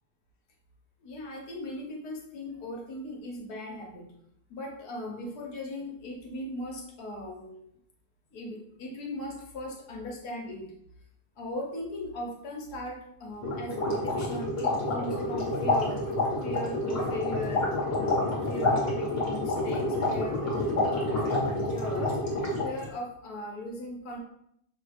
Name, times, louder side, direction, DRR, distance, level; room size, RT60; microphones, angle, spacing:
voice 1, 1.0-4.1 4.5-7.7 8.3-10.7 11.4-16.0 16.4-22.2 22.6-24.2, left 1 dB, 70° left, 0 dB, 1.4 m, -38 dB
sound 1, 13.4-22.8, left 2 dB, 40° left, 1.4 m, -28 dB
5.7 x 2.3 x 3.3 m, 0.73 s
omnidirectional pair, 1.7 m